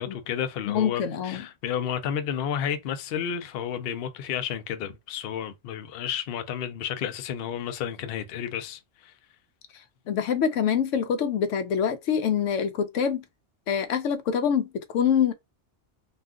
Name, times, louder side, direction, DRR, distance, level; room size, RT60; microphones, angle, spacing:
voice 1, 0.0-9.1, left 8 dB, 65° left, 0.7 m, -31 dB
voice 2, 0.7-1.4 10.1-13.2 13.7-15.3, left 7 dB, 85° left, 0.9 m, -25 dB
2.5 x 2.3 x 3.5 m
omnidirectional pair, 1.2 m